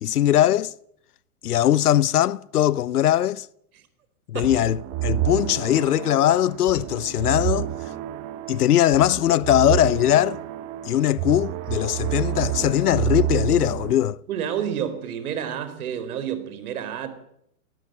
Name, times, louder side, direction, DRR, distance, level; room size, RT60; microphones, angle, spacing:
voice 1, 0.0-0.7 1.4-3.5 4.3-7.7 8.5-10.4 10.9-14.2, left 12 dB, 85° left, 0.8 m, -20 dB
sound 1, 4.4-13.9, right 13 dB, 35° right, 1.4 m, -29 dB
voice 2, 14.3-17.1, right 9 dB, 70° right, 4.2 m, -29 dB
18.5 x 18.5 x 7.7 m
hypercardioid pair, 125°, 45 cm